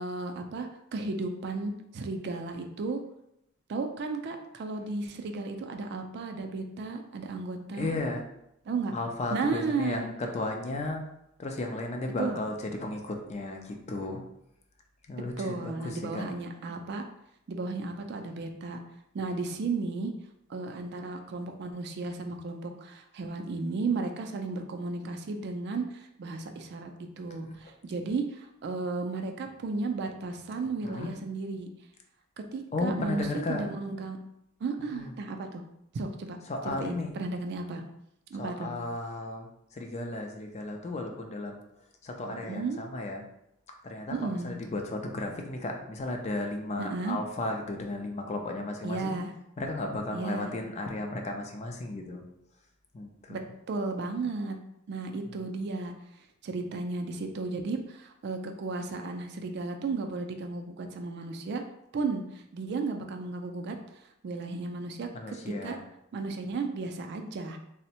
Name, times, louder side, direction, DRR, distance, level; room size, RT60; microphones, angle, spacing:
voice 1, 0.0-3.0 3.7-7.9 8.7-8.9 9.3-10.1 12.2-12.4 15.4-17.0 17.5-18.8 19.1-20.1 20.5-26.9 27.2-31.7 32.5-34.2 34.6-35.6 35.9-36.4 36.6-37.8 38.3-38.7 42.3-42.9 44.1-44.6 46.8-47.2 48.8-49.3 50.1-50.5 53.3-53.4 53.7-54.6 54.9-55.9 56.4-61.6 61.9-65.8 66.1-67.6, right 3 dB, 55° right, 5 dB, 0.3 m, -34 dB
voice 2, 7.8-8.2 8.9-11.0 11.4-14.2 15.1-16.3 27.4-27.6 30.8-31.1 32.7-33.7 34.9-35.1 36.5-37.1 38.4-39.5 39.7-41.6 42.0-43.2 43.8-49.1 49.6-52.2 52.9-53.4 65.1-65.8, left 2 dB, 30° left, 2 dB, 0.4 m, -34 dB
3.4 x 2.0 x 2.8 m, 0.81 s
head